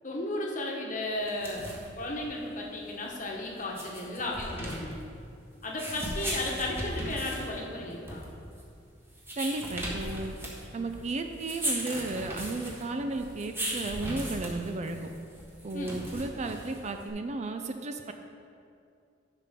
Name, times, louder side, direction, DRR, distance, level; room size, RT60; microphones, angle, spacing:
voice 1, 0.0-1.7 2.0-5.0 5.6-8.2 15.7-16.0, left 2 dB, 45° left, -1 dB, 1.2 m, -34 dB
sound 1, 1.2-17.1, right 1 dB, 15° right, 1.3 m, -38 dB
voice 2, 9.4-10.3 10.7-15.1 15.6-18.1, right 2 dB, 40° right, 6 dB, 0.4 m, -34 dB
10.5 x 5.8 x 3.6 m, 2.4 s
head